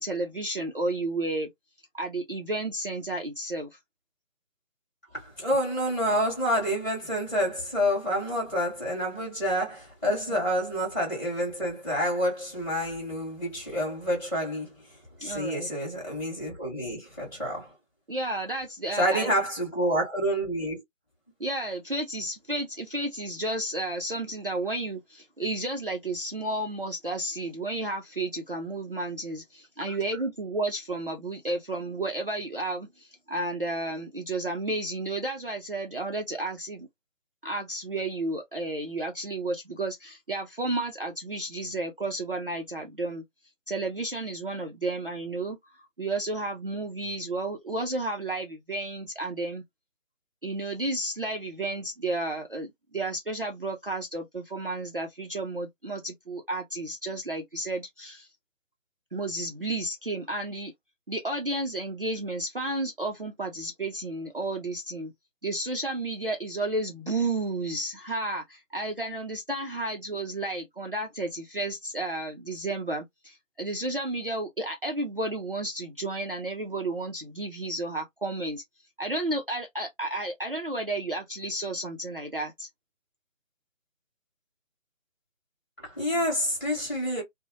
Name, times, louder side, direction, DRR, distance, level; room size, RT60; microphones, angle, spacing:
voice 1, 0.0-1.5 1.9-3.8 15.2-15.7 18.1-19.3 21.4-36.9 37.4-43.2 43.7-45.6 46.0-49.6 50.4-58.3 59.1-60.7 61.1-65.1 65.4-78.6 79.0-82.7, right 2 dB, 45° right, 0.4 m, -32 dB
voice 2, 5.1-14.7 15.2-17.7 19.0-20.8 29.9-30.0 85.8-87.2, equal, 5° left, 1.4 m, -28 dB
2.7 x 2.0 x 2.6 m
figure-of-eight pair, 170°, 39 cm